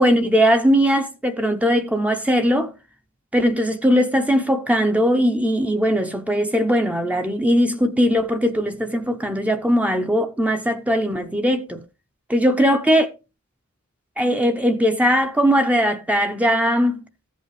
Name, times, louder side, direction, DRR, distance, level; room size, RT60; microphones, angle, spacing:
voice 1, 0.0-2.7 3.3-11.8 12.3-13.1 14.2-17.0, equal, 5° right, 0.7 m, -19 dB
14.0 x 8.2 x 3.2 m
head